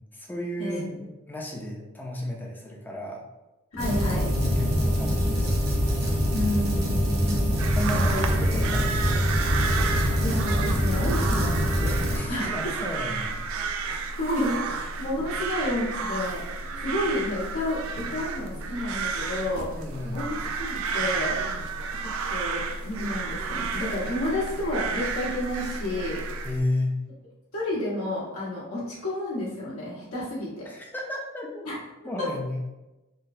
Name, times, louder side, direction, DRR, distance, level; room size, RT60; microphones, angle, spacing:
voice 1, 0.0-3.2 4.1-5.7 7.7-9.2 12.1-13.4 19.8-20.2 24.1-24.4 26.4-27.0 30.7-31.6 32.0-32.6, left 1 dB, 10° left, -1 dB, 0.4 m, -33 dB
voice 2, 3.7-4.2 6.3-7.5 7.9-8.3 10.2-11.9 12.3-12.5 13.8-17.8 18.1-19.7 20.1-21.4 22.3-26.2 27.5-30.7 31.6-31.8, left 1 dB, 80° left, -7 dB, 1.3 m, -31 dB
sound 1, 3.8-12.2, equal, 45° right, 0.8 m, -24 dB
sound 2, 7.6-26.6, right 4 dB, 65° right, 0.3 m, -32 dB
3.8 x 2.1 x 2.6 m, 1.0 s
head